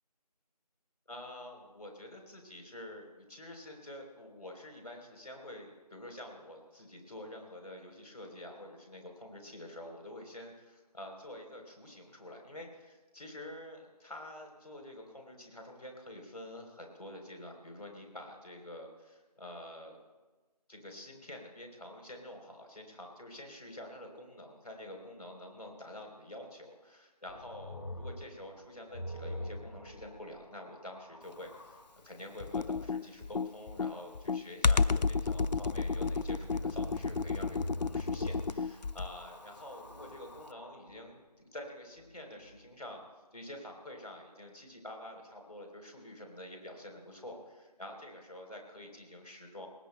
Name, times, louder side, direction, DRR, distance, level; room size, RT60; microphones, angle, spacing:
voice 1, 1.1-20.0 20.7-41.2 41.5-43.0 43.3-49.7, left 1 dB, 65° left, 2 dB, 3.7 m, -48 dB
sound 1, 27.3-31.9 34.9-41.0 42.0-42.6, left 1 dB, 40° left, 1.4 m, -42 dB
Computer keyboard, 32.4-39.3, left 4 dB, 90° left, 0.5 m, -31 dB
26.5 x 19.5 x 2.2 m, 1.2 s
figure-of-eight pair, 170°, 21 cm